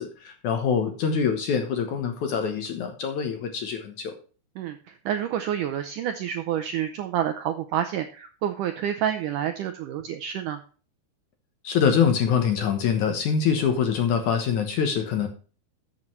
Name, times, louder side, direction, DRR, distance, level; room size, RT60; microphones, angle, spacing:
voice 1, 0.0-4.1 11.6-15.3, left 7 dB, 65° left, 6 dB, 2.1 m, -24 dB
voice 2, 4.6-10.6, right 10 dB, 80° right, 7 dB, 1.9 m, -28 dB
13.0 x 7.9 x 3.2 m, 0.37 s
omnidirectional pair, 4.6 m